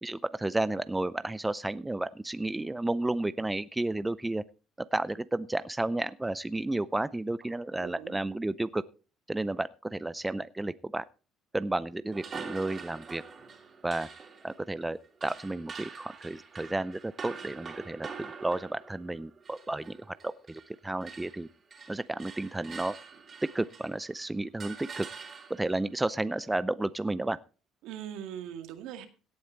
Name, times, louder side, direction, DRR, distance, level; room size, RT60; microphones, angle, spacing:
voice 1, 0.0-4.4 4.8-8.8 9.3-11.0 11.5-13.2 13.8-14.1 14.4-21.5 21.9-23.0 23.4-25.1 25.5-27.4, right 2 dB, 10° right, 15 dB, 0.5 m, -32 dB
voice 2, 7.7-8.2 27.8-29.1, right 10 dB, 80° right, 7 dB, 2.1 m, -41 dB
sound 1, 12.1-20.7 21.0-24.1 24.6-25.8, right 5 dB, 35° right, 3.1 m, -45 dB
17.0 x 8.6 x 4.5 m, 0.35 s
cardioid pair, 115°, 0 cm